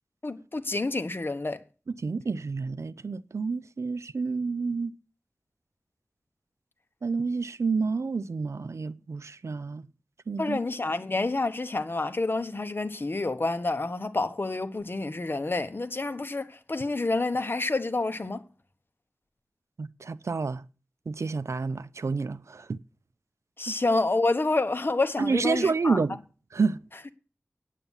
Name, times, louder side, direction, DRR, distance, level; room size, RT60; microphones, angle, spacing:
voice 1, 0.2-1.6 10.4-18.4 23.6-26.0, left 2 dB, 45° left, 1.0 m, -28 dB
voice 2, 2.0-4.9 7.0-9.9 10.3-10.6 19.8-20.6 21.1-22.8 23.7-23.8 25.2-26.2 26.5-26.8, right 4 dB, 75° right, 0.5 m, -29 dB
9.1 x 8.4 x 7.1 m
wide cardioid pair, 70°, 5 cm